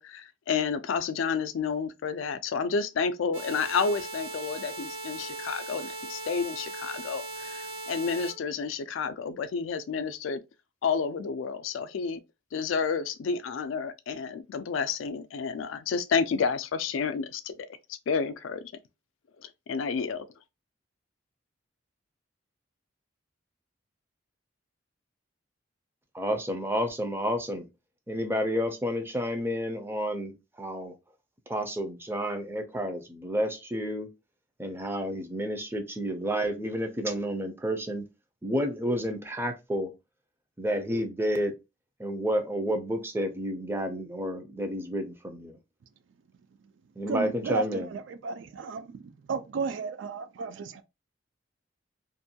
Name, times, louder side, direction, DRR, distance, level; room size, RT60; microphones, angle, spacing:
voice 1, 0.0-10.4 10.8-12.2 12.5-18.7 19.4-20.3, left 5 dB, 85° left, 0.4 m, -30 dB
sound 1, 3.3-8.3, right 2 dB, 90° right, 0.7 m, -38 dB
voice 2, 26.1-27.7 28.1-30.9 31.5-34.1 34.6-38.1 38.4-39.9 40.6-41.6 42.0-45.6 47.0-47.9, equal, 10° right, 0.5 m, -30 dB
voice 3, 47.1-50.8, right 4 dB, 70° right, 0.4 m, -33 dB
2.5 x 2.2 x 2.7 m
head